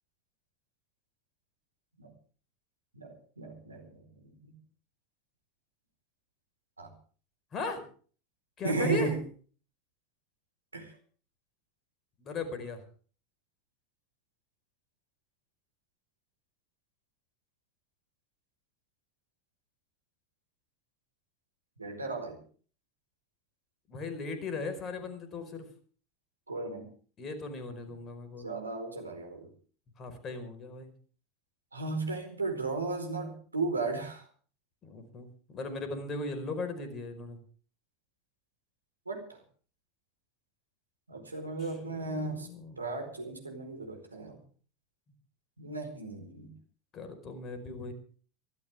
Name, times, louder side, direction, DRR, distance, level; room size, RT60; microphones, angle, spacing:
voice 1, 2.9-4.0 4.4-4.5 6.8-6.9 8.6-9.2 10.7-10.9 21.8-22.4 26.5-26.9 28.4-29.5 31.7-34.2 39.1-39.2 41.1-42.5 42.8-44.4 45.6-46.5, right 3 dB, 85° right, 5 dB, 4.5 m, -35 dB
voice 2, 7.5-7.8 8.6-9.1 12.2-12.8 23.9-25.7 27.2-28.5 30.0-30.9 34.8-37.4 41.9-42.9 46.9-47.9, left 3 dB, 30° left, 8 dB, 5.0 m, -38 dB
24.0 x 14.5 x 3.6 m, 0.42 s
figure-of-eight pair, 80°, 0 cm